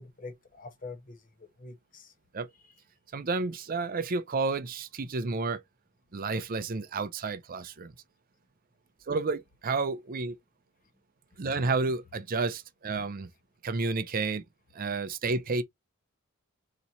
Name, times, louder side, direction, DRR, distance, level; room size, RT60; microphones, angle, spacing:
voice 1, 0.0-2.1, left 3 dB, 40° left, 1.0 m, -45 dB
voice 2, 3.1-5.6 6.1-7.9 9.1-10.4 11.4-13.3 13.6-14.4 14.7-15.6, right 3 dB, 40° right, 0.5 m, -31 dB
4.2 x 3.0 x 4.0 m
head